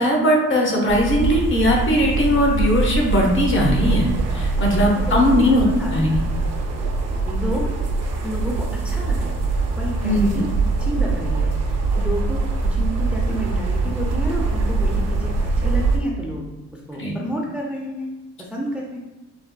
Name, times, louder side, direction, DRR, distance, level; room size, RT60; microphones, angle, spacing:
voice 1, 0.0-6.2 10.0-10.4 17.0-17.2, left 1 dB, 40° left, -1 dB, 0.8 m, -19 dB
sound 1, 0.9-16.0, right 3 dB, 55° right, 0.6 m, -23 dB
voice 2, 5.0-5.5 5.8-6.0 7.2-7.7 8.2-9.3 9.8-10.5 10.8-15.3 15.6-16.5 16.7-18.1 18.4-19.0, right 1 dB, 5° right, -3 dB, 0.4 m, -30 dB
3.5 x 2.3 x 2.2 m, 1.1 s
cardioid pair, 90°, 30 cm